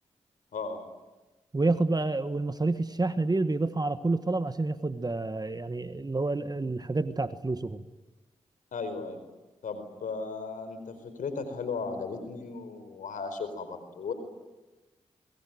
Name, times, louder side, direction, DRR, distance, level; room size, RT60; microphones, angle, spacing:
voice 1, 0.5-0.8 8.7-9.2 9.6-14.1, left 4 dB, 75° left, 9 dB, 4.6 m, -36 dB
voice 2, 1.5-7.8, right 2 dB, 30° right, 11 dB, 1.5 m, -28 dB
26.0 x 22.5 x 9.2 m, 1.1 s
supercardioid pair, 40°, 13 cm